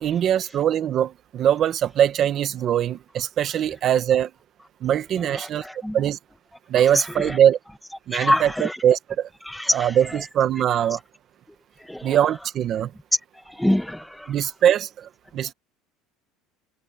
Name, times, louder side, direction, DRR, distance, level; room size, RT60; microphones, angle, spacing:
voice 1, 0.0-4.3 4.8-5.6 5.9-6.2 6.7-7.6 8.1-9.3 9.7-11.0 12.0-12.9 14.3-15.5, right 10 dB, 35° right, 1.3 m, -22 dB
voice 2, 5.2-6.0 6.8-7.4 8.1-8.8 9.4-10.2 11.8-12.2 13.5-14.3, left 1 dB, ahead, 1.9 m, -26 dB
cardioid pair, 165°, 0 cm